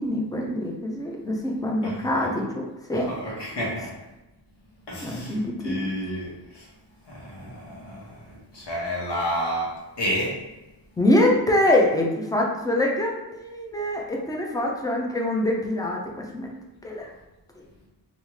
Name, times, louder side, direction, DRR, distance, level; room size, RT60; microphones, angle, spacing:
voice 1, 0.0-2.5 2.9-3.1 5.0-5.8 11.0-16.0 16.3-16.5 16.8-17.1, left 1 dB, 10° left, -1 dB, 0.5 m, -24 dB
voice 2, 1.8-2.3 2.9-3.9 4.9-6.7 7.1-10.4, equal, 70° left, -4 dB, 1.3 m, -31 dB
3.5 x 2.7 x 3.1 m, 1.0 s
wide cardioid pair, 140°, 43 cm